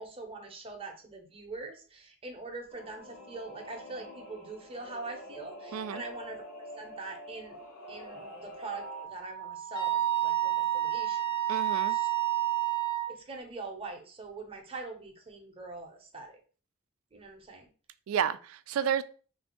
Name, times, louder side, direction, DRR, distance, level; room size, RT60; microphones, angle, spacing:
voice 1, 0.0-6.4 6.8-7.5 7.9-11.2 11.9-12.1 13.1-16.4 17.1-17.7, right 3 dB, 25° right, 0.8 m, -43 dB
Singing / Musical instrument, 2.7-9.1, equal, 80° left, 1.2 m, -46 dB
Wind instrument woodwind instrument, 8.8-13.1, right 12 dB, 20° left, 0.7 m, -30 dB
voice 2, 11.5-12.0 18.1-19.0, right 8 dB, 75° right, 0.3 m, -30 dB
3.4 x 2.6 x 4.3 m
head